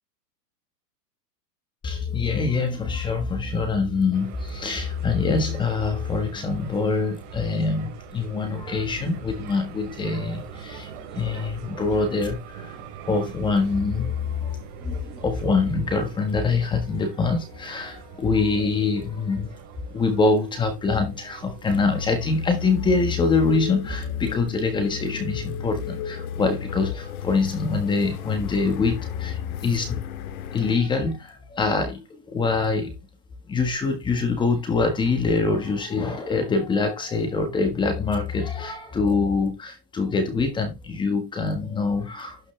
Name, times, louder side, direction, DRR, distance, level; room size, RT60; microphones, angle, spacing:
voice 1, 1.8-12.8 13.1-19.5 19.9-30.0 30.5-33.0 33.5-42.4, left 4 dB, 10° left, 1.4 m, -24 dB
sound 1, 4.1-22.8, right 7 dB, 45° right, 3.8 m, -42 dB
sound 2, 21.7-30.8, left 7 dB, 60° left, 1.9 m, -34 dB
12.0 x 6.2 x 3.3 m
supercardioid pair, 165°, 49 cm